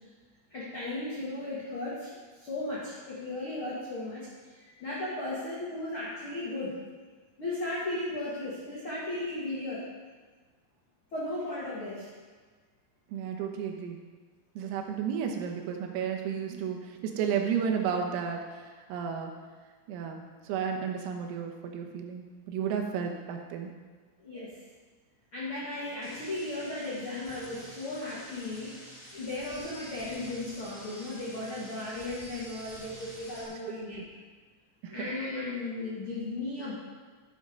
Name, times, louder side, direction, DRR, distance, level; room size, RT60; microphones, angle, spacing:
voice 1, 0.5-6.8 7.4-9.8 11.1-12.1 24.2-24.5 25.3-28.7 29.1-34.0 34.8-36.7, left 2 dB, 85° left, -7 dB, 1.1 m, -36 dB
voice 2, 13.1-14.0 14.6-18.4 18.9-19.3 19.9-23.7 33.9-34.1 34.8-35.1, right 7 dB, 90° right, 2 dB, 3.8 m, -32 dB
sound 1, 26.0-33.4, equal, 10° left, 1.9 m, -48 dB
12.0 x 7.8 x 5.3 m, 1.4 s
omnidirectional pair, 5.9 m